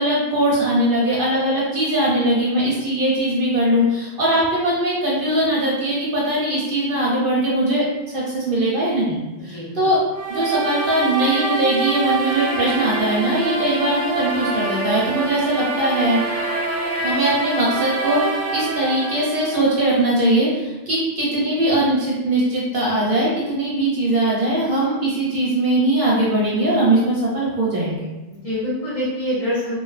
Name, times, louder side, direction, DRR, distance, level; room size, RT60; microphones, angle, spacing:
voice 1, 0.0-7.8 8.1-10.0 10.3-16.2 17.0-28.1, right 1 dB, 55° right, -6 dB, 0.7 m, -20 dB
voice 2, 9.4-9.9 28.3-29.8, equal, 40° left, -10 dB, 0.6 m, -26 dB
sound 1, 10.1-20.1, right 3 dB, 85° right, 0.9 m, -25 dB
2.5 x 2.2 x 2.4 m, 1.1 s
omnidirectional pair, 1.2 m